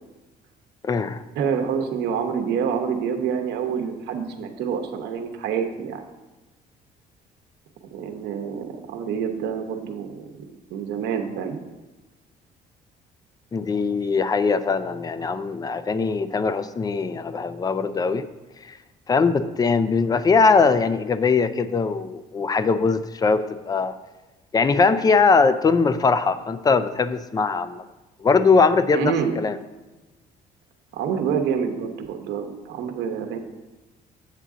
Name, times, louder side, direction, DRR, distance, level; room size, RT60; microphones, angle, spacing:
voice 1, 0.8-1.2 13.5-18.3 18.7-18.8 19.1-23.9 24.5-27.8 28.2-29.6, left 4 dB, 20° left, 13 dB, 0.4 m, -21 dB
voice 2, 1.4-6.0 7.9-10.4 10.7-11.6 28.9-29.3 30.9-33.4, right 7 dB, 85° right, 5 dB, 1.0 m, -27 dB
8.3 x 6.9 x 3.7 m, 1.1 s
cardioid pair, 110°, 17 cm